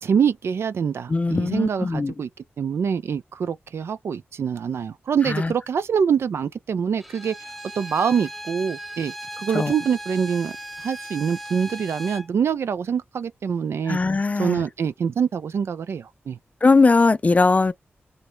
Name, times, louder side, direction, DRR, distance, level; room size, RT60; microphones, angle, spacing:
voice 1, 0.0-2.3 2.6-10.5 10.8-14.0 14.4-16.4, right 7 dB, 75° right, 0.3 m, -25 dB
voice 2, 1.1-2.1 5.3-5.5 9.5-9.7 13.9-14.6 16.6-17.7, left 3 dB, 35° left, 0.5 m, -19 dB
Bowed string instrument, 7.0-12.3, right 1 dB, 5° right, 0.8 m, -37 dB
3.9 x 2.2 x 3.1 m
cardioid pair, 70°, 4 cm